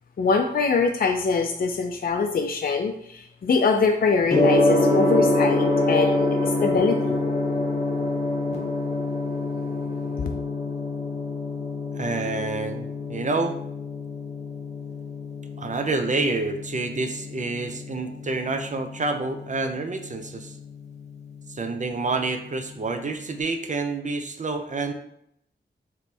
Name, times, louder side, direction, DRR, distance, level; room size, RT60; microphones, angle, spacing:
voice 1, 0.2-7.2, left 4 dB, 55° left, 4 dB, 0.4 m, -23 dB
Gong, 4.3-23.3, left 2 dB, 40° left, 1.2 m, -27 dB
voice 2, 11.9-13.6 15.6-20.6 21.5-24.9, right 3 dB, 45° right, 6 dB, 0.5 m, -28 dB
3.3 x 3.1 x 4.2 m, 0.74 s
wide cardioid pair, 65°, 18 cm